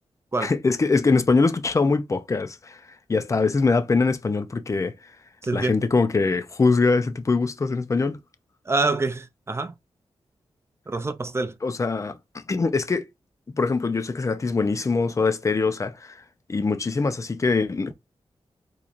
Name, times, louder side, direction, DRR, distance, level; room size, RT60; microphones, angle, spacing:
voice 1, 0.4-2.8 3.1-4.9 5.5-8.2 11.6-13.0 13.5-16.2 16.5-17.9, left 4 dB, 30° left, 0.5 m, -23 dB
voice 2, 5.4-5.8 8.7-9.7 10.9-11.6, right 3 dB, 25° right, 0.4 m, -26 dB
4.0 x 3.0 x 2.5 m
wide cardioid pair, 105°, 11 cm